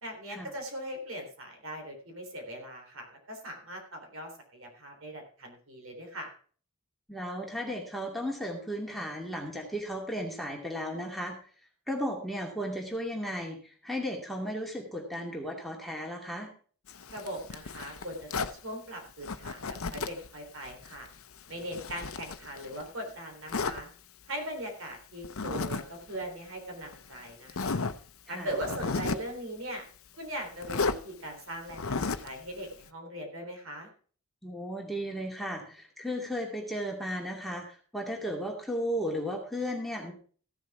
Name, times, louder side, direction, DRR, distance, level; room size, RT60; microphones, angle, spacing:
voice 1, 0.0-6.3 17.1-21.1 21.5-23.9 24.3-27.8 28.3-29.8 30.2-33.9, right 1 dB, 65° right, 3 dB, 3.6 m, -40 dB
voice 2, 7.1-11.4 11.9-16.5 28.3-28.5 34.4-40.1, equal, ahead, -1 dB, 2.4 m, -35 dB
Zipper (clothing), 16.9-18.6 19.2-20.3 20.6-22.9 23.5-23.8 25.2-25.8 26.1-26.2 26.9-27.0 27.5-28.0 28.5-29.3 30.6-31.0 31.7-32.3, left 4 dB, 75° left, 0.7 m, -33 dB
15.0 x 7.3 x 4.8 m, 0.43 s
head